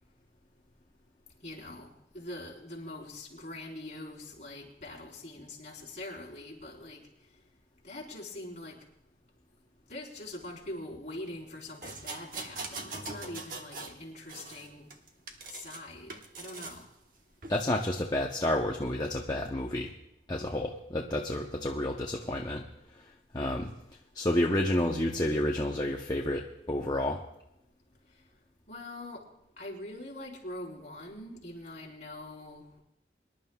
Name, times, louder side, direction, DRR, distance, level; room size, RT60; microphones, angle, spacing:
voice 1, 1.4-1.9 2.1-7.0 7.8-8.8 9.9-14.9 15.4-16.9 28.7-29.2 29.6-32.7, left 1 dB, 40° left, -3 dB, 4.1 m, -43 dB
sound 1, 11.8-14.0 14.3-15.8 16.1-16.8 17.4-17.6, right 3 dB, 45° right, 1.2 m, -42 dB
voice 2, 17.5-19.9 20.3-22.6 23.3-23.8 24.1-27.2, left 1 dB, 20° left, 0 dB, 0.8 m, -30 dB
24.5 x 11.5 x 2.4 m, 0.83 s
head